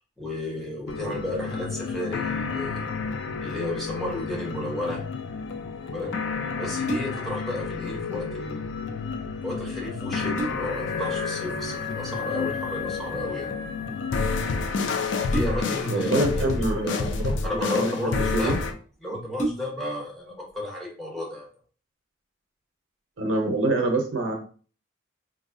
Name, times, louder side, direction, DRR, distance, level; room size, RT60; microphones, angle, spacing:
voice 1, 0.2-2.9 3.4-5.0 5.9-6.1 6.6-8.7 9.4-13.5 15.3-17.1 17.4-18.6 19.0-21.5, left 1 dB, ahead, -4 dB, 1.0 m, -33 dB
sound 1, 0.9-18.7, left 4 dB, 65° left, 0.4 m, -30 dB
sound 2, 6.8-7.4 9.4-9.5 10.0-10.9 12.5-12.8 15.3-15.9 16.9-17.6 18.3-18.4 18.7-18.8 19.3-20.0 20.5-20.6, right 1 dB, 40° left, 0.8 m, -32 dB
voice 2, 15.9-17.3 17.7-18.6 23.2-24.3, right 2 dB, 75° right, 3 dB, 0.6 m, -26 dB
3.9 x 2.6 x 2.5 m, 0.40 s
head